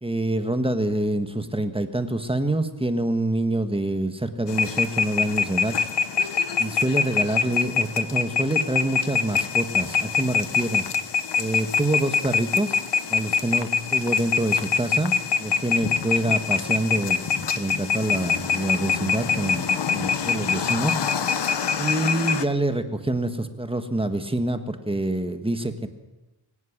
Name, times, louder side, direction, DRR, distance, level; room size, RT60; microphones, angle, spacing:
voice 1, 0.0-5.8 6.6-10.9 11.4-12.8 13.1-21.0 21.3-25.9, right 1 dB, 10° right, 8 dB, 1.5 m, -26 dB
sound 1, 4.5-22.4, left 6 dB, 55° left, 1.1 m, -25 dB
23.0 x 18.5 x 7.4 m, 1.0 s
wide cardioid pair, 165°, 50 cm